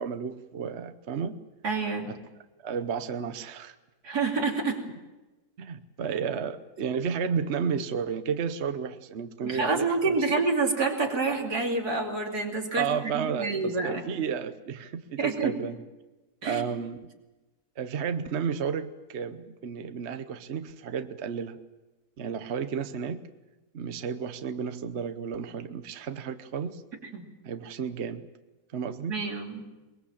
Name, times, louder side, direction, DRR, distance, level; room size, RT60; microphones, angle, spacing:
voice 1, 0.0-1.4 2.1-2.2 2.6-3.7 5.6-10.1 12.8-15.8 16.4-17.0 17.8-21.6 22.2-23.3 23.7-26.8 27.4-28.2 28.7-29.1, right 6 dB, 50° right, 9 dB, 1.1 m, -32 dB
voice 2, 1.6-2.1 4.0-4.8 9.4-12.9 13.1-14.0 15.2-15.6 16.4-16.6 27.1-27.2 29.1-29.6, right 4 dB, 80° right, 1 dB, 3.3 m, -28 dB
22.5 x 21.5 x 7.4 m, 1.1 s
omnidirectional pair, 1.7 m